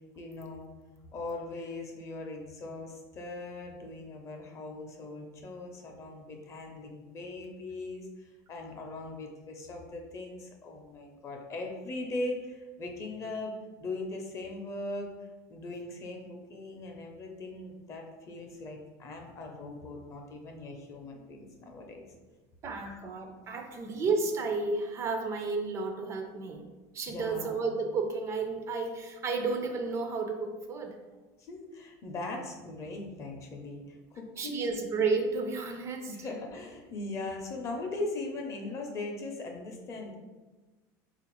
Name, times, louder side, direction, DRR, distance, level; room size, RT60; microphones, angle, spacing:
voice 1, 0.2-0.7 1.1-15.1 15.5-22.1 22.8-23.0 27.1-27.6 31.4-34.7 36.1-40.2, left 2 dB, 35° left, 2 dB, 0.6 m, -40 dB
voice 2, 22.6-26.6 26.9-31.0 34.4-36.1, right 4 dB, 30° right, 4 dB, 0.4 m, -32 dB
3.4 x 2.4 x 3.0 m, 1.2 s
supercardioid pair, 125°, 9 cm